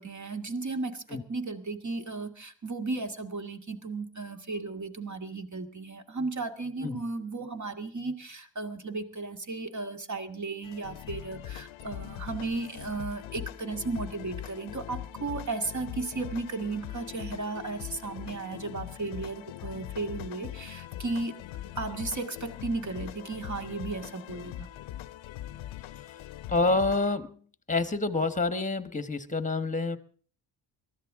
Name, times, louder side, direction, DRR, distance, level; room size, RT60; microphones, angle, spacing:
voice 1, 0.0-21.3 21.8-24.7, right 3 dB, 40° right, 6 dB, 2.1 m, -35 dB
sound 1, 10.6-27.2, left 13 dB, 85° left, 0.6 m, -41 dB
voice 2, 26.5-27.4 27.7-30.0, left 3 dB, 15° left, 11 dB, 1.3 m, -27 dB
22.5 x 14.0 x 3.6 m, 0.43 s
cardioid pair, 95°, 46 cm